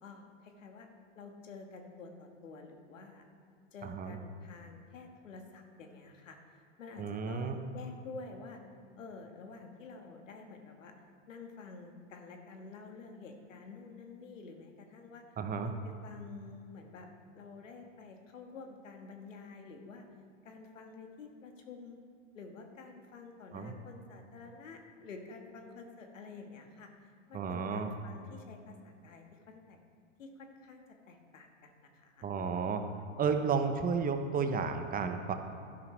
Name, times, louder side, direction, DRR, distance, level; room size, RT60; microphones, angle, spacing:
voice 1, 0.0-0.9 1.1-3.2 3.7-6.4 6.8-8.6 9.0-10.9 11.3-15.2 15.6-15.7 16.0-17.1 17.3-20.1 20.4-22.0 22.3-26.9 27.3-29.8 30.2-32.3, left 4 dB, 85° left, 4 dB, 1.6 m, -49 dB
voice 2, 3.8-4.2 7.0-7.6 15.4-15.7 23.5-23.7 27.3-27.9 32.2-32.8 33.2-35.3, right 5 dB, 25° right, 6 dB, 0.8 m, -32 dB
12.0 x 10.5 x 3.3 m, 2.4 s
hypercardioid pair, 105°, 38 cm